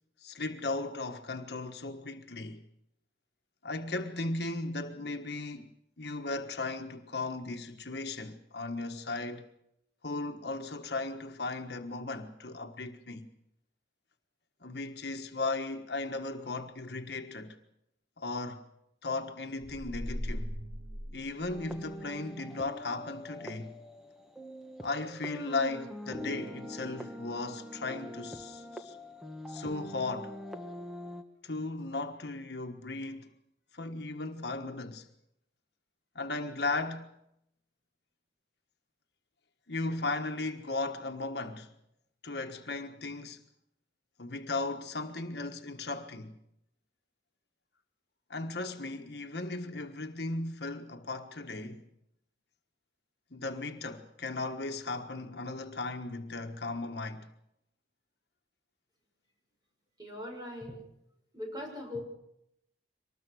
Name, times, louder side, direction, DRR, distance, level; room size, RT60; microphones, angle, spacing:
voice 1, 0.2-2.6 3.6-5.7 6.0-9.5 10.0-13.3 14.6-17.6 18.2-18.6 19.0-20.5 21.1-23.7 24.8-29.0 29.5-30.4 31.4-33.3 33.7-35.1 36.1-37.1 39.7-41.7 42.2-43.4 44.2-46.4 48.3-51.8 53.3-57.3, left 3 dB, 65° left, 1.4 m, -36 dB
sound 1, 19.6-22.0, equal, 45° right, 7.2 m, -39 dB
sound 2, 21.5-31.2, equal, ahead, 1.4 m, -43 dB
voice 2, 60.0-60.8 61.3-62.0, left 1 dB, 20° right, 7.0 m, -40 dB
24.0 x 20.0 x 6.3 m
head